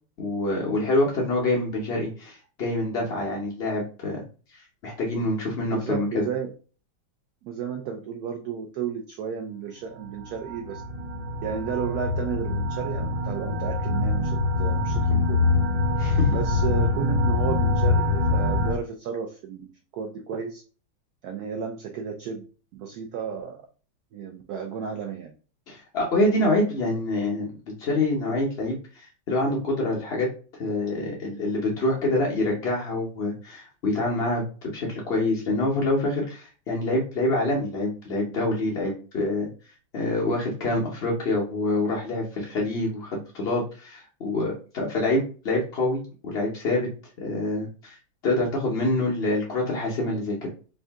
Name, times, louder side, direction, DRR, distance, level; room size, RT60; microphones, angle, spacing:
voice 1, 0.2-4.2 4.5-6.2 16.0-16.3 25.7-30.3 30.5-39.5 39.9-46.9 47.2-50.5, left 2 dB, 60° left, -3 dB, 0.6 m, -26 dB
voice 2, 5.7-6.5 7.4-10.8 11.4-15.4 16.3-20.6 21.2-22.5 22.7-23.6 24.1-25.3, right 7 dB, 80° right, 4 dB, 0.8 m, -33 dB
sound 1, 9.9-18.7, left 3 dB, 60° right, 1.8 m, -24 dB
3.6 x 2.7 x 3.4 m, 0.37 s
omnidirectional pair, 2.2 m